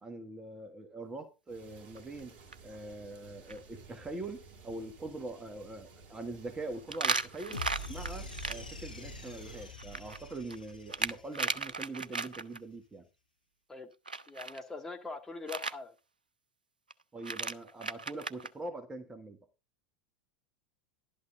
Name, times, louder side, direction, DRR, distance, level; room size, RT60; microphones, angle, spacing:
voice 1, 0.0-2.3 2.6-13.0 17.1-19.4, right 2 dB, 15° right, 7 dB, 1.5 m, -43 dB
sound 1, 1.5-9.8, right 4 dB, 40° right, 2.3 m, -55 dB
sound 2, 2.0-2.2 2.5-2.6 3.2-3.3 3.5-3.6 6.9-8.5 9.8-12.6 14.1-14.6 15.5-15.7 16.9-17.0 17.2-18.5, right 4 dB, 80° right, 0.5 m, -35 dB
sound 3, 7.5-11.9, left 2 dB, 85° left, 1.1 m, -44 dB
voice 2, 14.3-15.9, left 3 dB, 10° left, 3 dB, 1.8 m, -42 dB
11.5 x 8.5 x 3.8 m, 0.27 s
figure-of-eight pair, 85°, 5 cm